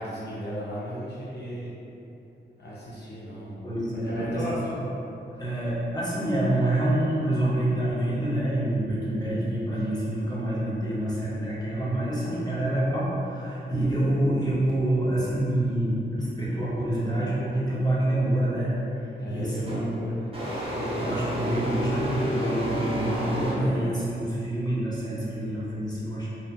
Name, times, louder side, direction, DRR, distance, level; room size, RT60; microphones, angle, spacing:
voice 1, 0.0-1.8 2.6-3.5 3.9-4.6 12.2-12.4 19.2-20.3, equal, 55° left, -8 dB, 1.0 m, -36 dB
voice 2, 3.6-4.8 5.4-18.7 19.3-19.9 20.7-26.3, right 1 dB, 20° left, -8 dB, 1.0 m, -27 dB
sound 1, 19.7-19.9 20.3-23.9, equal, 30° right, 0.9 m, -31 dB
3.1 x 2.7 x 2.3 m, 2.8 s
cardioid pair, 45°, 20 cm